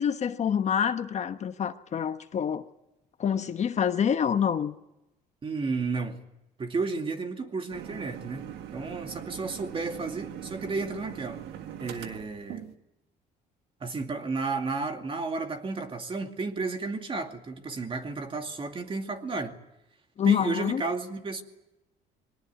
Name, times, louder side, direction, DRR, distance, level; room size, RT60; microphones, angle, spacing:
voice 1, 0.0-2.6 3.2-4.7 20.2-20.8, left 8 dB, 45° left, 9 dB, 1.1 m, -26 dB
voice 2, 5.4-6.2 6.6-8.4 8.7-11.4 11.8-12.6 13.8-19.6 20.2-21.4, right 4 dB, 30° right, 5 dB, 2.5 m, -32 dB
sound 1, 7.7-12.7, right 10 dB, 80° right, 1.7 m, -41 dB
22.5 x 19.0 x 9.4 m, 0.90 s
cardioid pair, 110°, 17 cm